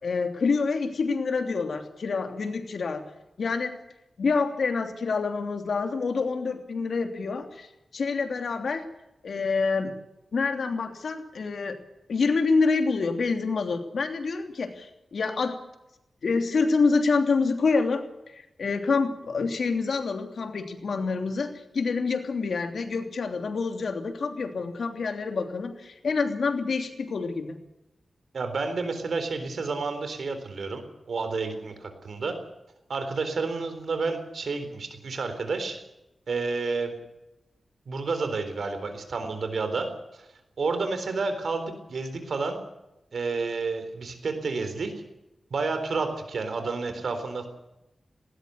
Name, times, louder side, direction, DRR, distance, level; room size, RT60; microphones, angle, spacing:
voice 1, 0.0-3.0 3.4-3.8 4.2-7.7 7.9-8.9 9.2-9.9 10.3-11.8 12.1-15.6 16.2-18.1 18.3-27.6, left 4 dB, 75° left, 5 dB, 2.9 m, -27 dB
voice 2, 28.3-30.8 31.1-32.4 32.9-35.8 36.3-36.9 37.9-40.3 40.6-42.6 43.1-44.9 45.5-47.5, right 4 dB, 75° right, 8 dB, 3.9 m, -30 dB
19.0 x 19.0 x 8.2 m, 0.93 s
wide cardioid pair, 135°, 0 cm